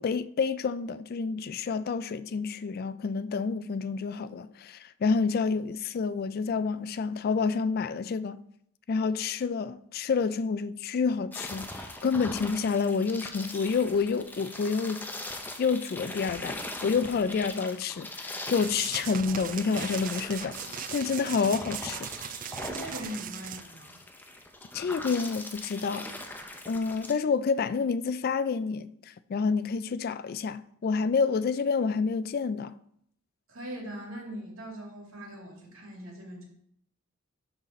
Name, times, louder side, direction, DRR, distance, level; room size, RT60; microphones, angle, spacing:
voice 1, 0.0-8.4 8.9-15.1 15.6-16.6 16.8-20.6 20.9-22.1 24.7-26.1 26.7-32.7, left 5 dB, 45° left, 0.3 m, -28 dB
sound 1, 11.3-27.1, left 1 dB, 10° left, 0.6 m, -41 dB
sound 2, 18.6-23.6, right 10 dB, 40° right, 0.3 m, -39 dB
voice 2, 22.6-24.0 33.5-36.5, equal, 75° right, 2.3 m, -41 dB
12.0 x 4.0 x 4.1 m
head